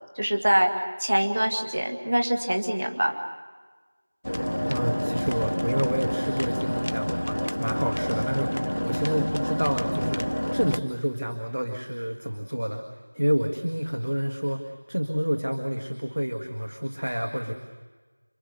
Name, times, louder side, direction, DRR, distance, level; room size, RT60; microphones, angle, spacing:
voice 1, 0.2-0.7 1.0-3.1, right 1 dB, 30° right, 4 dB, 1.7 m, -24 dB
sound 1, 4.2-10.8, equal, 75° left, 1.0 m, -28 dB
voice 2, 4.7-12.8 13.1-17.5, equal, 55° right, 3 dB, 1.8 m, -29 dB
28.5 x 22.0 x 6.9 m, 1.4 s
figure-of-eight pair, 180°, 0 cm